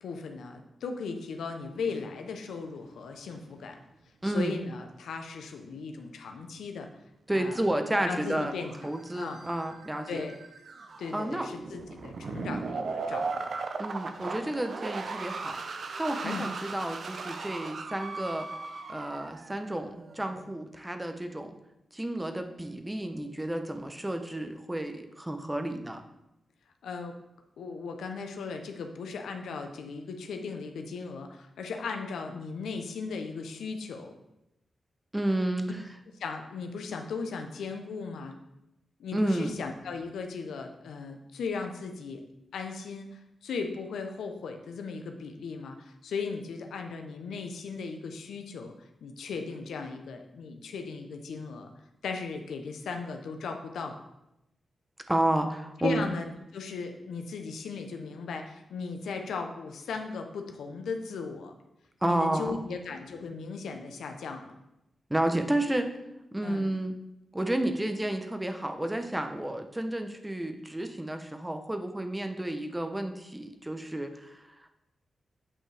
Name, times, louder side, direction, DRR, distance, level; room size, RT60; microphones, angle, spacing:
voice 1, 0.0-3.8 4.2-6.9 7.3-7.6 8.0-8.7 9.1-9.4 10.1-10.4 11.0-13.5 16.2-16.5 26.8-27.2 27.6-34.1 36.2-38.4 39.0-42.2 42.5-48.7 49.0-51.7 52.0-54.0 55.8-61.5 62.0-64.5 66.4-66.6, left 4 dB, 90° left, 5 dB, 0.7 m, -37 dB
sound 1, 1.6-1.9 2.4-2.5 7.7-20.5, right 4 dB, 65° right, 0.6 m, -38 dB
voice 2, 4.2-4.6 7.3-8.5 8.8-10.2 11.1-11.5 13.8-18.5 18.9-21.6 21.9-26.0 35.1-35.8 39.1-39.6 55.1-56.0 62.0-62.8 65.1-65.9 66.3-67.0 67.3-74.5, right 1 dB, 15° right, 6 dB, 0.9 m, -31 dB
8.5 x 5.4 x 3.4 m, 0.88 s
cardioid pair, 60°, 0 cm